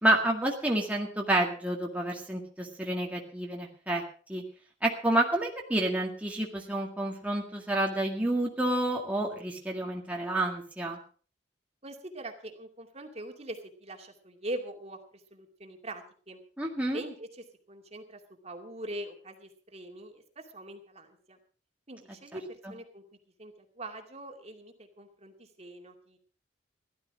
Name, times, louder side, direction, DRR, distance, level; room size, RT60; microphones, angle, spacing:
voice 1, 0.0-4.0 4.3-4.4 4.8-11.0 16.6-17.0, right 1 dB, 10° right, -1 dB, 2.0 m, -29 dB
voice 2, 11.8-16.4 16.9-21.4 21.9-23.0 23.4-26.2, right 1 dB, 35° right, 4 dB, 2.5 m, -43 dB
16.5 x 12.0 x 4.9 m, 0.41 s
head